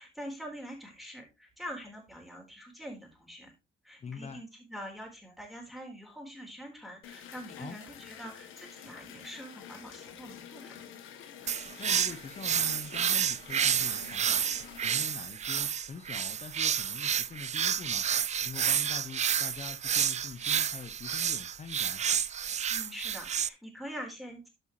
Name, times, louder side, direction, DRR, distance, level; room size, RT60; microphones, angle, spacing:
voice 1, 0.0-3.5 3.8-10.8 22.7-24.5, equal, ahead, 4.1 m, -44 dB
voice 2, 4.0-4.4 7.6-7.8 11.8-14.5 14.8-18.1 18.4-22.0, left 5 dB, 35° left, 0.7 m, -44 dB
sound 1, 7.0-15.0, left 8 dB, 85° left, 1.3 m, -48 dB
sound 2, 11.5-23.5, right 8 dB, 35° right, 0.4 m, -30 dB
12.0 x 5.7 x 3.1 m
cardioid pair, 90°, 20 cm